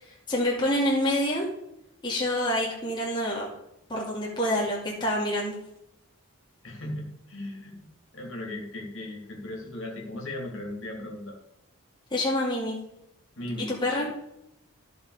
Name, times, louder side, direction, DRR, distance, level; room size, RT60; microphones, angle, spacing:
voice 1, 0.3-1.5 2.0-3.5 3.9-5.6 12.1-12.8 13.6-14.1, left 1 dB, 20° left, -4 dB, 2.6 m, -27 dB
voice 2, 6.6-7.9 8.1-11.4 13.4-13.8, left 1 dB, 60° left, 0 dB, 2.9 m, -37 dB
14.0 x 6.0 x 5.0 m, 0.82 s
head